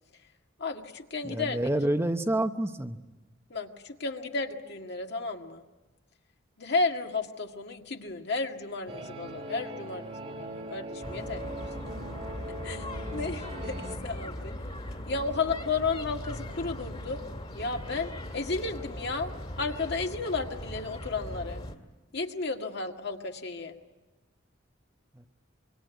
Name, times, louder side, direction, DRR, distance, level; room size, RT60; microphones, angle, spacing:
voice 1, 0.6-1.6 3.5-5.6 6.6-11.6 12.6-14.5 15.1-17.2 17.5-21.6 22.1-23.8, left 3 dB, 60° left, 3 dB, 1.9 m, -33 dB
voice 2, 1.2-3.0 25.1-25.3, right 1 dB, 15° right, 6 dB, 0.9 m, -28 dB
sound 1, 8.9-14.0, right 1 dB, 35° right, 1.9 m, -40 dB
sound 2, 11.0-21.7, left 1 dB, 30° left, 2.2 m, -39 dB
25.5 x 23.5 x 9.3 m, 1.1 s
head